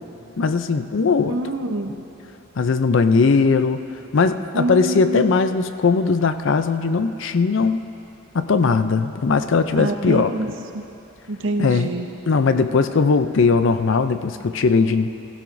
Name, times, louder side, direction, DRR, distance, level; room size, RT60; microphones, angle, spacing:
voice 1, 0.4-1.4 2.6-3.8 4.1-7.9 8.3-10.3 11.6-11.9 12.3-15.1, left 4 dB, 60° left, 10 dB, 0.4 m, -19 dB
voice 2, 1.3-2.0 4.5-5.5 9.8-10.8 11.3-12.1, right 2 dB, 60° right, 5 dB, 0.8 m, -26 dB
16.5 x 15.5 x 2.6 m, 2.9 s
head